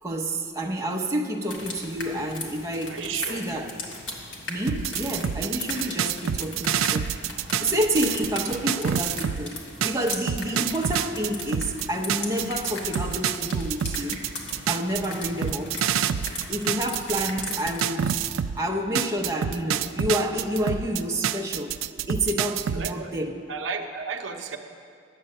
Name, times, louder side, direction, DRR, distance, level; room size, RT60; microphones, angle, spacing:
voice 1, 0.0-3.8 4.5-7.1 7.6-9.6 9.8-14.2 14.7-15.8 16.5-21.8 22.1-23.4, right 1 dB, 15° right, 0 dB, 0.7 m, -29 dB
sound 1, 1.5-17.8, left 2 dB, 65° left, 1.5 m, -38 dB
voice 2, 2.9-3.4 22.8-23.1 23.5-24.6, right 5 dB, 70° right, 4 dB, 0.7 m, -33 dB
sound 2, 4.7-9.4 9.8-18.6 18.9-22.9, right 9 dB, 90° right, 0.3 m, -27 dB
10.0 x 8.0 x 6.6 m, 2.3 s
head